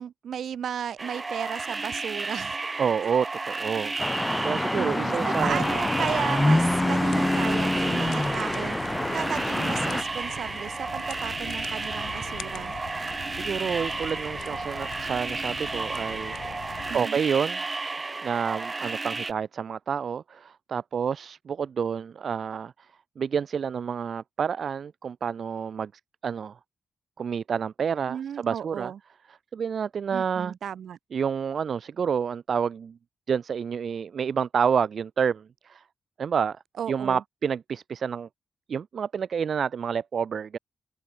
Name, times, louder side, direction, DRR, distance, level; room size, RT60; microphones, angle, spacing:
voice 1, 0.0-2.6 3.0-3.1 4.7-8.8 9.1-12.7 16.9-17.2 28.1-29.0 30.1-31.0 36.8-37.2, right 8 dB, 65° right, 3.1 m, -34 dB
sound 1, 1.0-19.3, right 3 dB, 20° right, 2.0 m, -33 dB
voice 2, 2.8-5.7 13.1-17.6 18.2-22.9 23.2-25.9 26.2-26.6 27.2-28.9 29.3-30.6 31.1-33.0 33.3-35.8 36.2-36.6 36.9-38.3 38.7-40.6, right 7 dB, 50° right, 1.1 m, -29 dB
sound 2, 4.0-10.0, left 1 dB, 10° left, 0.7 m, -26 dB
sound 3, 5.4-17.0, left 10 dB, 90° left, 6.0 m, -43 dB
wide cardioid pair, 160°, 0 cm